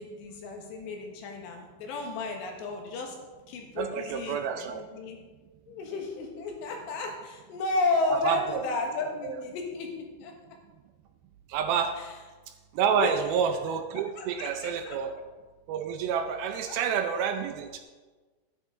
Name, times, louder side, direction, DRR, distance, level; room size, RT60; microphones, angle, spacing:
voice 1, 0.0-3.2 3.5-5.2 5.7-10.3 12.9-13.1 14.2-15.0 16.7-16.8, left 3 dB, 85° left, 2 dB, 3.7 m, -33 dB
voice 2, 3.8-4.8 8.1-8.6 9.2-9.4 11.5-11.9 12.7-15.1 15.7-17.8, right 7 dB, 80° right, 6 dB, 2.3 m, -28 dB
12.5 x 9.9 x 3.9 m, 1.3 s
omnidirectional pair, 4.8 m